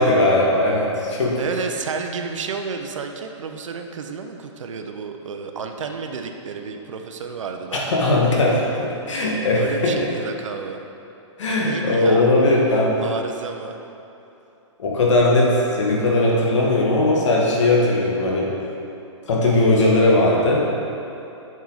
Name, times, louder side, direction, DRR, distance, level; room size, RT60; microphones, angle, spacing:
voice 1, 0.0-1.4 7.7-10.0 11.4-13.0 14.8-18.5 19.3-20.7, left 2 dB, 70° left, -3 dB, 1.7 m, -18 dB
voice 2, 1.4-8.3 9.5-10.8 11.6-12.3 13.0-13.8, right 5 dB, 85° right, 5 dB, 0.7 m, -31 dB
7.5 x 5.5 x 4.0 m, 2.9 s
hypercardioid pair, 170°, 16 cm